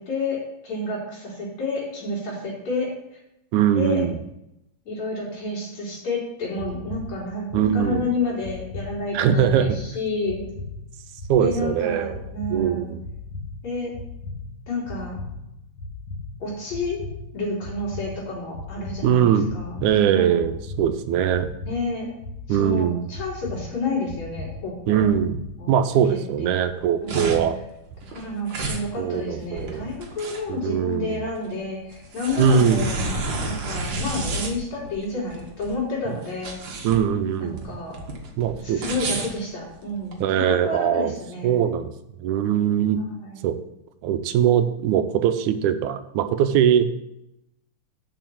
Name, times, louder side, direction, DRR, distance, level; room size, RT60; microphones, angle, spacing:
voice 1, 0.0-3.2 3.7-4.0 4.9-10.4 11.4-12.9 13.6-13.9 14.7-15.2 16.4-20.4 21.6-22.1 22.5-25.0 25.6-25.7 26.1-26.5 27.0-27.5 28.1-33.0 33.4-36.8 37.4-38.0 38.6-41.6 43.2-43.5, left 2 dB, 65° left, -5 dB, 4.7 m, -30 dB
voice 2, 3.5-4.2 7.5-8.1 9.1-9.8 11.3-12.2 12.5-13.0 19.0-19.5 19.8-21.5 22.5-23.1 24.9-25.4 25.7-27.6 29.0-29.8 30.5-31.2 32.4-32.8 36.8-37.7 38.4-38.8 40.2-41.1 41.4-41.9 42.2-43.0 43.4-43.5 44.0-46.8, right 9 dB, 85° right, 9 dB, 2.1 m, -21 dB
sound 1, 6.5-25.9, left 3 dB, 40° left, 2.6 m, -38 dB
sound 2, 26.6-40.2, right 2 dB, 50° right, 1.7 m, -31 dB
7.0 x 6.2 x 7.5 m, 0.84 s
omnidirectional pair, 3.4 m